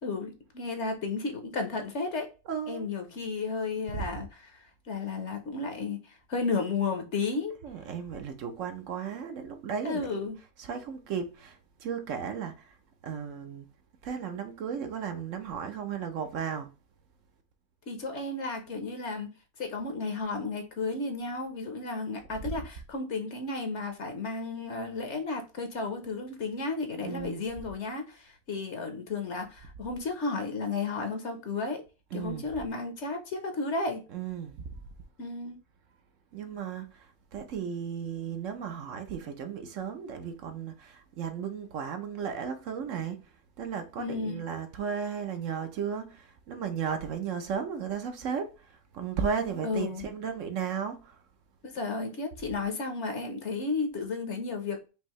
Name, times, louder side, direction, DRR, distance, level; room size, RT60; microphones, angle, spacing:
voice 1, 0.0-2.3 2.7-7.6 9.8-10.4 17.9-19.3 19.6-31.8 32.1-34.0 35.2-35.6 44.0-44.4 49.6-50.0 51.6-54.9, left 3 dB, 55° left, 1.1 m, -33 dB
voice 2, 2.5-2.9 3.9-4.2 7.6-10.2 10.6-12.8 13.0-13.7 14.0-16.7 27.0-27.4 32.1-32.5 34.1-34.6 36.3-43.2 43.6-51.2, right 7 dB, 65° right, 1.0 m, -35 dB
5.4 x 2.6 x 3.0 m
omnidirectional pair, 1.5 m